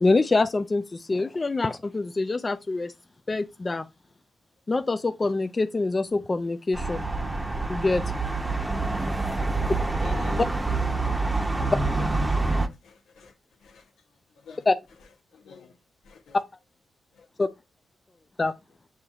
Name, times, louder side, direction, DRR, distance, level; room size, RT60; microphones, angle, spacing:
voice 1, 0.0-2.9 3.3-3.9 4.7-7.1 7.7-8.0 14.7-14.8 17.4-17.5 18.4-18.5, left 3 dB, 35° left, 0.4 m, -25 dB
sound 1, 6.7-12.7, right 3 dB, 20° right, 0.8 m, -26 dB
voice 2, 10.0-10.4 10.9-11.6 12.0-13.9 14.4-14.6 15.3-15.8 16.0-16.4 17.1-17.3, left 6 dB, 85° left, 0.8 m, -48 dB
7.1 x 2.8 x 2.3 m
supercardioid pair, 45°, 0 cm